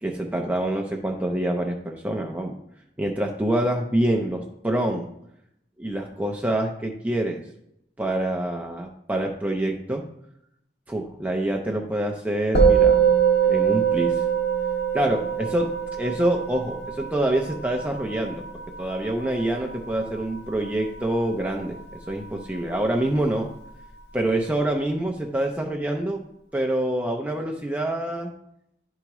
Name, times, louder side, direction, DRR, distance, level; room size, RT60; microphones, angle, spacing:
voice 1, 0.0-2.6 3.0-5.1 5.8-7.4 8.0-10.0 10.9-13.2 13.4-14.2 14.9-18.4 18.8-21.8 22.1-23.5 24.1-26.2 26.5-28.3, right 1 dB, 10° right, 1 dB, 0.5 m, -26 dB
Musical instrument, 12.6-22.1, right 7 dB, 70° left, 1.7 m, -24 dB
10.5 x 4.6 x 3.0 m, 0.79 s
head